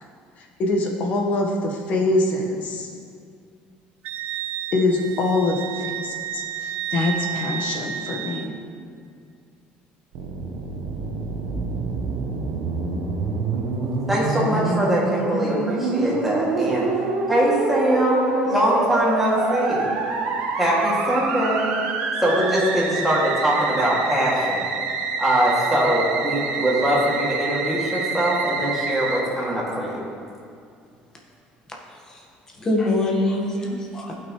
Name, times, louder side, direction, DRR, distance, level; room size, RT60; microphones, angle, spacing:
voice 1, 0.4-2.9 4.7-8.5, left 2 dB, 50° left, 1 dB, 1.3 m, -24 dB
Wind instrument woodwind instrument, 4.0-8.5, right 10 dB, 60° right, 0.3 m, -31 dB
Musical instrument, 10.1-29.2, right 4 dB, 80° right, 1.2 m, -27 dB
voice 2, 13.8-16.9 17.3-19.9 20.6-21.8 22.2-24.7 25.2-30.0, equal, 5° right, -7 dB, 2.3 m, -22 dB
voice 3, 31.9-32.2 32.5-34.1, left 2 dB, 20° left, -2 dB, 1.4 m, -24 dB
15.5 x 6.1 x 3.2 m, 2.3 s
cardioid pair, 155°, 3 cm